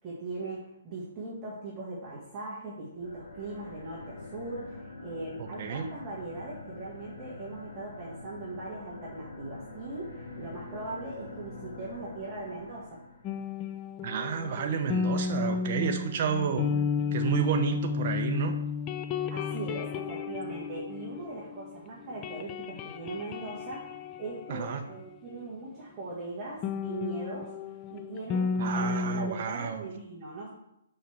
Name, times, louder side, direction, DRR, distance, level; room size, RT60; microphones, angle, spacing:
voice 1, 0.0-13.0 19.3-27.5 27.9-30.5, right 2 dB, 20° right, -8 dB, 1.8 m, -40 dB
sound 1, 2.9-13.4, left 3 dB, 80° left, 3.0 m, -45 dB
voice 2, 5.4-5.9 14.0-16.7 17.1-18.6 24.5-24.8 28.6-29.9, right 6 dB, 40° right, 3 dB, 0.7 m, -31 dB
sound 2, 13.2-21.7 22.0-25.5 26.6-29.3, left 5 dB, 20° left, 0.4 m, -33 dB
5.7 x 5.2 x 6.4 m, 0.81 s
hypercardioid pair, 160°, 0 cm